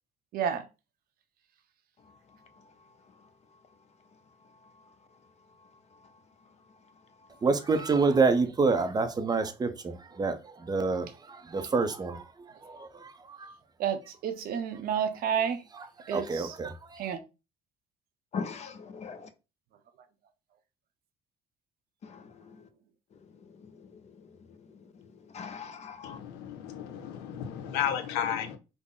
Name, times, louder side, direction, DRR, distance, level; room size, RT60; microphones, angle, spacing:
voice 1, 0.3-0.7 13.8-15.6 16.1-16.6 17.0-17.2, right 8 dB, 60° right, 0.7 m, -30 dB
voice 2, 7.4-13.6 15.8-17.0, right 4 dB, 25° right, 0.5 m, -28 dB
voice 3, 18.3-19.3 22.0-22.2 25.3-26.2, left 5 dB, 40° left, 0.6 m, -39 dB
voice 4, 26.0-28.6, left 9 dB, 90° left, 0.6 m, -33 dB
3.6 x 2.0 x 3.7 m
cardioid pair, 100°, 17 cm